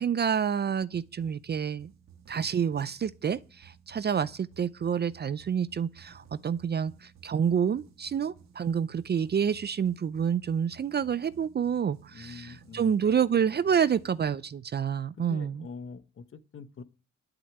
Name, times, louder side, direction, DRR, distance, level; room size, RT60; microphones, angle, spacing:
voice 1, 0.0-1.9 2.3-15.6, right 7 dB, 35° right, 0.5 m, -28 dB
sound 1, 0.9-14.8, right 7 dB, 60° right, 1.6 m, -56 dB
voice 2, 12.1-13.1 15.2-16.8, left 5 dB, 45° left, 1.1 m, -44 dB
11.0 x 6.5 x 9.0 m
cardioid pair, 90°, 30 cm